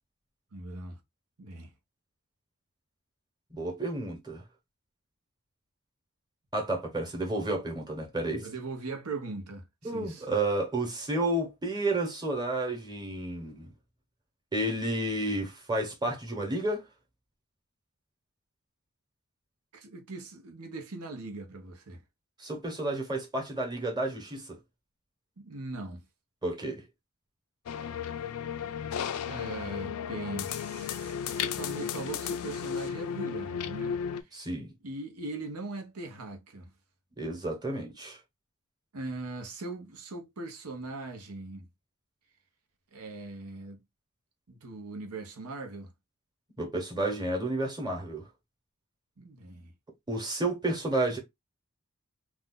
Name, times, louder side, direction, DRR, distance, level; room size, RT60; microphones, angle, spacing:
voice 1, 0.5-1.0 1.4-1.7 8.4-10.4 19.7-22.0 25.4-26.0 29.2-34.3 34.8-36.7 38.9-41.7 42.9-43.8 44.5-45.9 49.2-49.7, right 3 dB, 80° right, 0.9 m, -40 dB
voice 2, 3.5-4.4 6.5-8.5 9.8-13.7 14.5-16.8 22.4-24.6 26.4-26.8 34.3-34.7 37.2-38.2 46.6-48.2 50.1-51.2, right 2 dB, 20° right, 1.1 m, -31 dB
sound 1, 27.7-34.2, left 8 dB, 85° left, 0.4 m, -34 dB
2.6 x 2.4 x 3.6 m
head